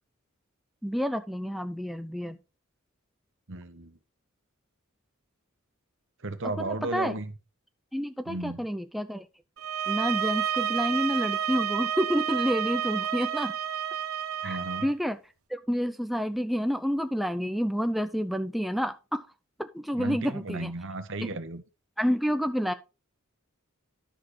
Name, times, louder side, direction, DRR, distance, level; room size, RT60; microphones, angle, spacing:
voice 1, 0.8-2.4 6.4-7.1 7.9-9.3 9.9-13.5 14.4-15.2 15.5-19.3 19.6-20.7 21.2-21.4 22.0-22.7, equal, ahead, 0.4 m, -29 dB
voice 2, 3.5-4.0 6.2-7.3 8.3-8.7 14.4-14.9 19.9-21.6, right 2 dB, 60° right, 1.1 m, -34 dB
sound 1, 9.6-14.9, right 9 dB, 85° right, 0.8 m, -30 dB
11.5 x 6.4 x 3.2 m
head